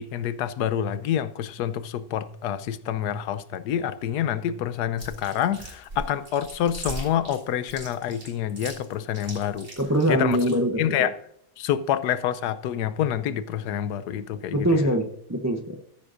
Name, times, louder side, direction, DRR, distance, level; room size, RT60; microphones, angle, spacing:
voice 1, 0.0-9.7 10.1-10.4 10.8-11.1 11.6-14.9, left 10 dB, 85° left, 1.2 m, -27 dB
Chewing mastication, 5.0-10.5, right 2 dB, 45° right, 3.5 m, -39 dB
voice 2, 9.8-11.1 14.5-15.8, right 1 dB, 20° right, 0.4 m, -23 dB
14.0 x 9.7 x 2.6 m
omnidirectional pair, 1.7 m